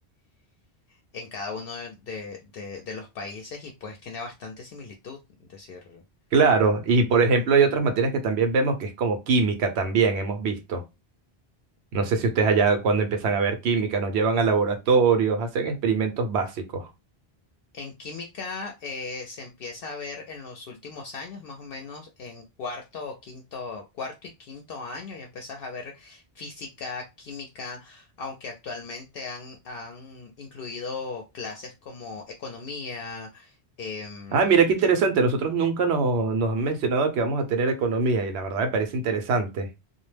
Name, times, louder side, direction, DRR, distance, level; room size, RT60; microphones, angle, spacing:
voice 1, 1.1-6.0 17.7-34.5, left 4 dB, 65° left, 0.7 m, -38 dB
voice 2, 6.3-10.8 11.9-16.9 34.3-39.7, right 4 dB, 85° right, 0.9 m, -22 dB
2.3 x 2.1 x 3.1 m
omnidirectional pair, 1.1 m